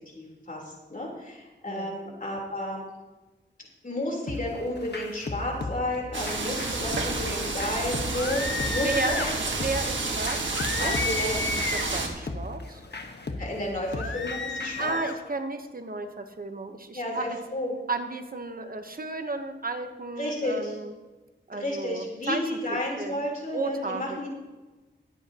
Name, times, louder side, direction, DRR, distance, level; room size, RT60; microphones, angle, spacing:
voice 1, 0.1-2.9 3.8-9.3 10.8-11.4 13.4-15.0 16.9-17.8 20.2-20.8 21.5-24.3, left 1 dB, 45° left, -2 dB, 3.6 m, -32 dB
sound 1, 4.3-14.9, left 2 dB, 60° left, 1.3 m, -38 dB
sound 2, 6.1-12.1, right 3 dB, 80° right, 1.5 m, -30 dB
sound 3, 8.1-9.3 10.6-12.0 13.9-15.2, left 4 dB, 80° left, 1.0 m, -32 dB
voice 2, 8.8-9.2 9.6-11.0 11.6-12.8 14.8-17.2 17.9-20.9 21.5-23.1 23.5-24.3, right 3 dB, 50° right, 7 dB, 1.0 m, -33 dB
21.0 x 8.2 x 2.9 m, 1.2 s
wide cardioid pair, 55°, 19 cm